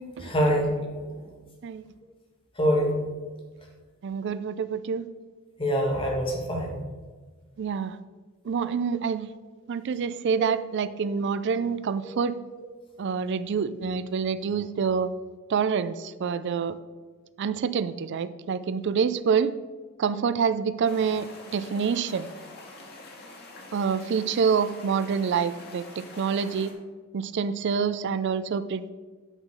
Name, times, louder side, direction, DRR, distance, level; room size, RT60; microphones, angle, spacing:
voice 1, 0.0-1.3 2.5-3.1 5.6-6.8 10.4-10.5 12.0-12.1, equal, 25° left, 0 dB, 1.5 m, -26 dB
voice 2, 4.0-5.0 7.6-8.0 8.4-9.3 9.7-12.4 13.0-15.1 15.5-16.8 17.4-19.5 20.0-22.3 23.7-26.7 27.1-28.9, right 6 dB, 55° right, 14 dB, 0.4 m, -27 dB
sound 1, 20.8-26.7, left 2 dB, 50° left, 1.5 m, -46 dB
8.9 x 3.8 x 6.5 m, 1.4 s
head